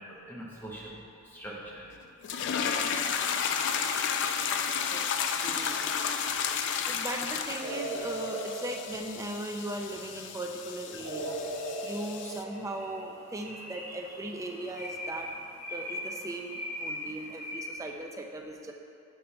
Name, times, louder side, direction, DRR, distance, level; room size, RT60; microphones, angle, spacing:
voice 1, 0.0-1.9 2.6-3.5, right 1 dB, 10° left, -4 dB, 0.8 m, -45 dB
sound 1, 2.2-12.4, left 7 dB, 60° left, 0.3 m, -32 dB
voice 2, 5.3-5.9 6.9-11.4 11.8-15.3 15.7-18.7, right 1 dB, 15° right, 2 dB, 0.4 m, -38 dB
sound 2, 5.7-6.2 7.6-9.7 11.0-13.1, right 1 dB, 80° right, 1.2 m, -38 dB
sound 3, 10.9-17.5, left 1 dB, 35° left, 0.9 m, -42 dB
6.7 x 5.2 x 2.9 m, 2.5 s
head